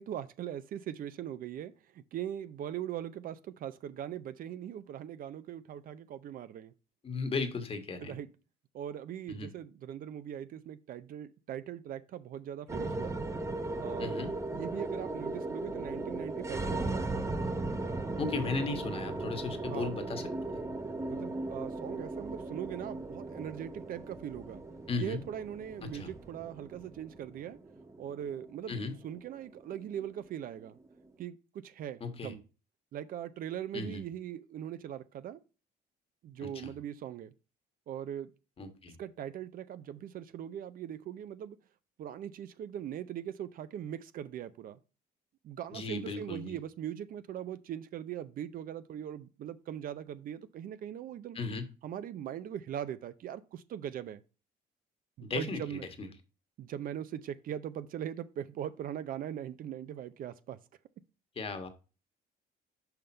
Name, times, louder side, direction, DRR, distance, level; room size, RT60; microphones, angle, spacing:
voice 1, 0.0-6.7 8.0-8.3 8.7-13.2 13.8-14.1 14.5-17.3 19.6-19.9 21.0-24.6 25.0-27.6 28.0-28.8 29.0-30.8 31.2-32.4 32.9-35.4 36.2-37.3 37.9-38.3 39.0-41.6 42.0-44.8 45.4-51.4 51.8-54.2 55.2-55.8 56.6-60.6, right 10 dB, 55° right, 0.6 m, -40 dB
voice 2, 7.0-8.1 9.3-9.5 14.0-14.4 18.2-20.3 24.9-25.2 25.9-26.1 28.7-28.9 32.0-32.3 33.7-34.0 36.4-36.7 38.6-38.9 45.7-46.5 51.3-51.6 55.2-56.1 61.3-61.7, left 4 dB, 35° left, 1.4 m, -36 dB
sound 1, 12.7-31.1, right 2 dB, 15° right, 0.8 m, -38 dB
5.8 x 5.3 x 4.3 m
cardioid pair, 110°, 17 cm